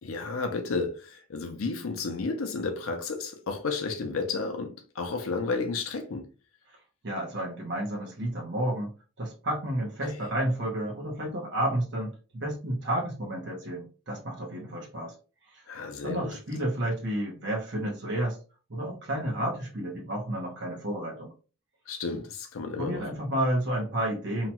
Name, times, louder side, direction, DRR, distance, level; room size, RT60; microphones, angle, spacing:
voice 1, 0.0-6.3 10.0-10.3 15.7-16.3 21.9-23.1, left 4 dB, 70° left, 0.5 m, -32 dB
voice 2, 7.0-8.9 9.2-15.1 15.5-15.6 16.0-18.4 18.7-21.3 22.8-24.5, right 1 dB, 55° right, 0.9 m, -31 dB
2.9 x 2.3 x 2.8 m
head